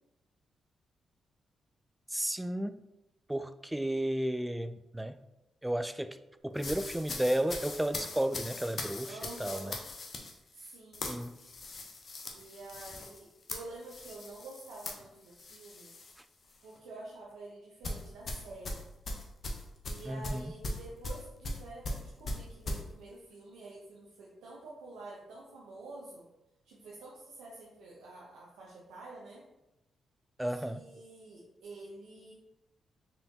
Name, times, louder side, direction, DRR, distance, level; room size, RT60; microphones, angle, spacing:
voice 1, 2.1-2.8 3.3-5.2 5.6-6.2 6.4-9.8 11.0-11.4 16.2-16.3 20.1-20.5 30.4-30.9, right 1 dB, 10° right, 0.3 m, -33 dB
sound 1, 6.6-16.2 16.5-16.8 17.8-22.8, left 2 dB, 55° left, 0.7 m, -40 dB
voice 2, 9.1-9.8 10.5-11.1 12.3-15.9 16.6-18.8 19.8-26.3 26.6-29.4 30.5-32.3, right 2 dB, 85° right, 0.7 m, -48 dB
4.3 x 3.3 x 2.7 m
supercardioid pair, 55°, 0 cm